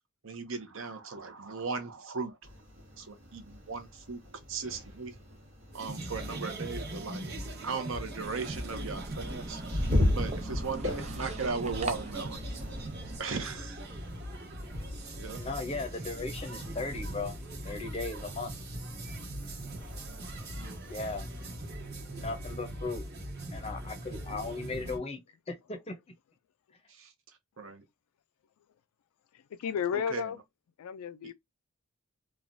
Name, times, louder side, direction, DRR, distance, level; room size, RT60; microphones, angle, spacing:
voice 1, 0.2-2.4 3.0-4.2 4.5-5.2 5.7-7.3 7.6-12.4 13.2-13.9 15.2-15.4 18.1-18.2 20.5-20.9 26.9-27.1 27.6-27.8 29.9-30.3, right 4 dB, 60° right, 0.7 m, -37 dB
sound 1, 2.4-22.3, left 1 dB, 80° right, 1.2 m, -39 dB
sound 2, 5.7-25.0, right 1 dB, 45° right, 1.1 m, -41 dB
sound 3, 8.2-13.2, right 3 dB, 30° right, 0.3 m, -42 dB
voice 2, 15.4-17.4 17.6-18.5 20.9-21.3 22.2-23.1 23.5-25.2 25.5-25.9, left 3 dB, 25° left, 0.6 m, -37 dB
voice 3, 29.3-30.4 30.8-31.3, left 8 dB, 80° left, 0.3 m, -33 dB
3.1 x 2.3 x 2.6 m
head